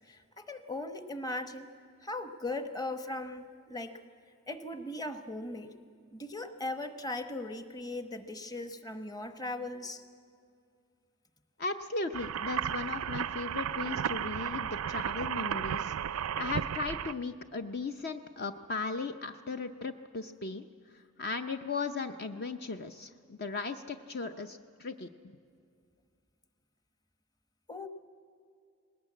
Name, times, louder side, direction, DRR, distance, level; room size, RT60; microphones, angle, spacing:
voice 1, 0.1-1.7 2.0-4.0 4.5-5.7 6.1-10.0 27.7-27.9, left 2 dB, 20° left, 8 dB, 1.0 m, -38 dB
voice 2, 11.6-15.9 16.4-20.7 20.9-25.1, left 3 dB, 50° left, 8 dB, 0.6 m, -37 dB
sound 1, 12.1-17.1, right 8 dB, 90° right, 0.4 m, -34 dB
20.0 x 18.0 x 8.5 m, 2.3 s
head